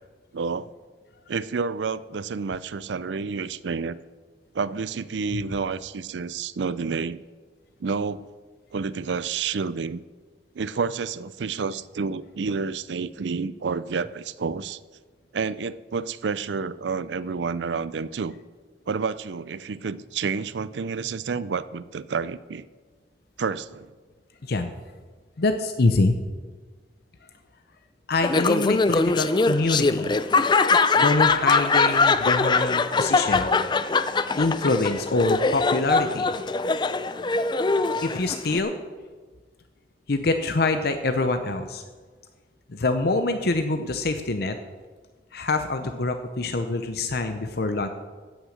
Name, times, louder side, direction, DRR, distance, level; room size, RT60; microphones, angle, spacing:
voice 1, 0.3-0.7 1.3-4.0 4.5-7.2 7.8-8.3 8.7-10.0 10.6-14.8 15.3-18.3 18.9-22.6 23.4-23.9, right 5 dB, 75° right, 17 dB, 0.5 m, -29 dB
voice 2, 25.4-26.1 28.1-30.2 30.9-33.5 34.4-36.3 38.0-38.7 40.1-41.8 42.7-44.6 45.3-47.9, left 3 dB, 60° left, 7 dB, 0.7 m, -25 dB
Laughter, 28.2-38.6, left 4 dB, 25° left, 0.4 m, -22 dB
16.0 x 6.3 x 6.5 m, 1.4 s
head